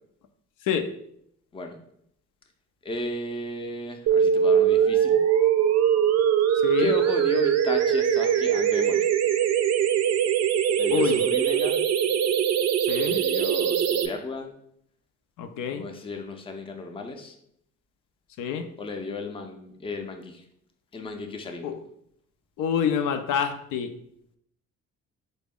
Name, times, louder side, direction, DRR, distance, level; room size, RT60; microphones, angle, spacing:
voice 1, 2.8-5.2 6.8-9.0 10.8-11.8 13.1-14.5 15.7-17.3 18.8-20.4 20.9-21.7, left 2 dB, 20° left, 4 dB, 0.5 m, -34 dB
sound 1, 4.1-14.1, right 8 dB, 60° right, 0.4 m, -22 dB
voice 2, 6.6-6.9 10.9-11.2 12.9-13.2 15.4-15.9 18.4-18.7 21.6-21.8 22.6-23.9, left 7 dB, 80° left, 7 dB, 0.5 m, -27 dB
4.1 x 2.0 x 3.6 m, 0.72 s
cardioid pair, 90°, 30 cm